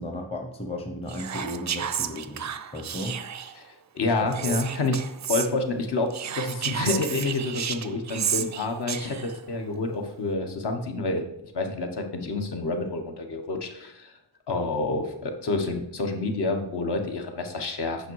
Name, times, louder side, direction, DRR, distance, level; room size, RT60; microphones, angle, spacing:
voice 1, 0.0-2.4 2.7-3.2 4.2-4.6, left 1 dB, 15° left, 4 dB, 0.8 m, -34 dB
Whispering, 1.1-3.6 4.3-5.5 6.1-9.4, right 8 dB, 40° right, 0.4 m, -32 dB
voice 2, 3.6-5.0 5.3-11.2 11.5-14.1 14.5-18.1, left 3 dB, 60° left, 4 dB, 1.3 m, -28 dB
8.9 x 5.7 x 4.7 m, 0.80 s
wide cardioid pair, 180°, 46 cm